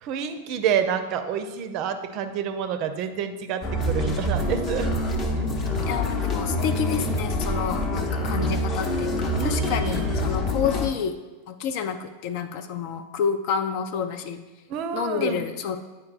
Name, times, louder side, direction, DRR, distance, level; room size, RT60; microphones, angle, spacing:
voice 1, 0.0-4.9 9.4-10.4 14.7-15.4, right 8 dB, 40° right, 8 dB, 0.5 m, -28 dB
sound 1, 3.6-10.9, left 1 dB, 30° left, 0.8 m, -26 dB
voice 2, 5.9-11.2 11.5-14.4 14.9-15.8, left 7 dB, 45° left, 10 dB, 0.4 m, -29 dB
9.5 x 4.5 x 2.5 m, 1.2 s
figure-of-eight pair, 90°, 0 cm